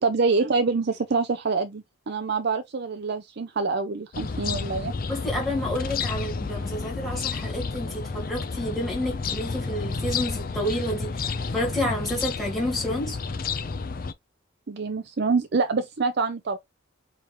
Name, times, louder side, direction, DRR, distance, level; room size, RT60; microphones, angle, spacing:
voice 1, 0.0-4.9 14.7-16.6, right 4 dB, 50° right, 0.5 m, -26 dB
sound 1, 4.1-14.1, left 4 dB, 45° left, 0.5 m, -31 dB
voice 2, 5.1-13.2, left 1 dB, ahead, 1.6 m, -30 dB
4.6 x 3.5 x 3.0 m
head